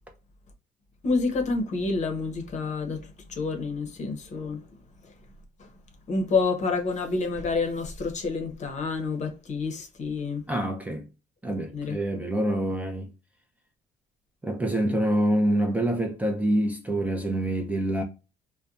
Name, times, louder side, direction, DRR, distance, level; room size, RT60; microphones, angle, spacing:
voice 1, 1.0-4.7 5.0-5.1 5.6-5.7 6.1-10.4 11.7-12.0, left 4 dB, 45° left, 0.8 m, -28 dB
voice 2, 10.5-11.1 11.4-13.1 14.4-18.0, right 1 dB, 10° right, 0.5 m, -26 dB
2.7 x 2.1 x 2.3 m
cardioid pair, 110°, 17 cm